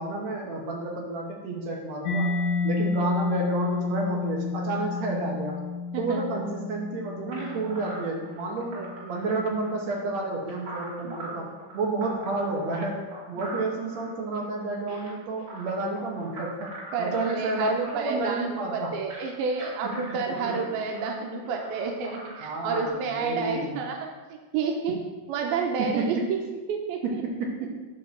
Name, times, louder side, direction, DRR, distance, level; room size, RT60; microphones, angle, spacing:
voice 1, 0.0-2.3 2.6-5.6 6.0-8.8 9.1-11.5 11.7-13.0 13.3-16.7 17.0-18.9 20.3-20.6 22.4-23.8 24.9-25.0 26.0-26.2 27.0-27.7, right 3 dB, 65° right, -1 dB, 1.8 m, -30 dB
Mallet percussion, 2.1-9.6, left 4 dB, 80° left, 1.7 m, -31 dB
voice 2, 5.9-6.4 8.7-9.3 11.0-11.5 16.9-25.0 25.3-27.2, right 5 dB, 85° right, 2 dB, 2.6 m, -30 dB
sound 1, 7.3-22.9, right 1 dB, 30° right, 2.6 m, -42 dB
9.8 x 3.7 x 6.6 m, 1.3 s
omnidirectional pair, 4.3 m